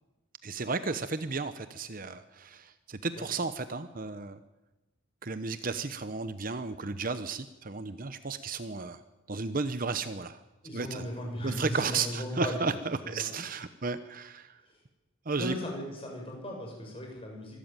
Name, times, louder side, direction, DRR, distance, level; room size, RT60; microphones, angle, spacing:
voice 1, 0.4-4.4 5.2-9.0 9.3-10.4 10.7-11.1 11.4-14.6 15.3-15.5, right 4 dB, 40° right, 12 dB, 0.9 m, -33 dB
voice 2, 10.6-12.8 13.0-13.3 15.4-17.6, equal, 25° left, 0 dB, 7.1 m, -37 dB
24.0 x 13.5 x 9.1 m, 1.0 s
head